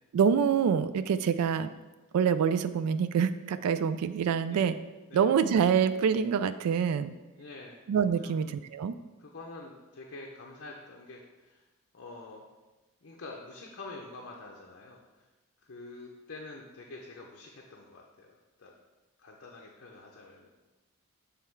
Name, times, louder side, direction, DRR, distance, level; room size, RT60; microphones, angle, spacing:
voice 1, 0.1-1.7 2.1-4.8 5.1-7.1 7.9-8.9, right 7 dB, 90° right, 12 dB, 0.3 m, -26 dB
voice 2, 7.4-7.8 8.2-8.4 9.2-11.7 11.9-12.4 13.0-15.3 15.6-18.7 19.2-20.5, left 3 dB, 50° left, -1 dB, 0.6 m, -47 dB
7.4 x 3.4 x 4.5 m, 1.1 s
head